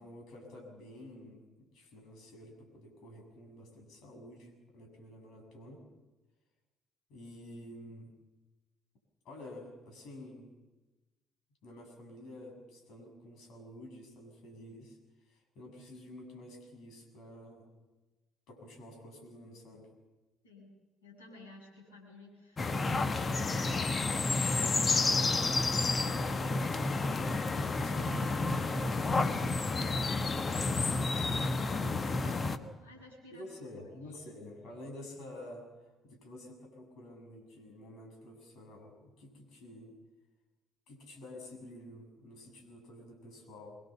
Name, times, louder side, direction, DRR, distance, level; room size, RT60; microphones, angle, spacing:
voice 1, 0.0-5.8 7.1-8.1 9.2-10.6 11.6-15.0 15.2-17.7 18.5-19.9 27.8-28.2 33.3-39.9 40.9-43.8, left 1 dB, 55° left, 3 dB, 6.8 m, -50 dB
voice 2, 21.0-26.8 32.2-33.5 33.8-33.9, left 2 dB, 80° left, -2 dB, 7.7 m, -54 dB
sound 1, 22.6-32.6, left 3 dB, 30° left, 1.4 m, -30 dB
24.0 x 20.5 x 7.2 m, 1.1 s
figure-of-eight pair, 45°, 0 cm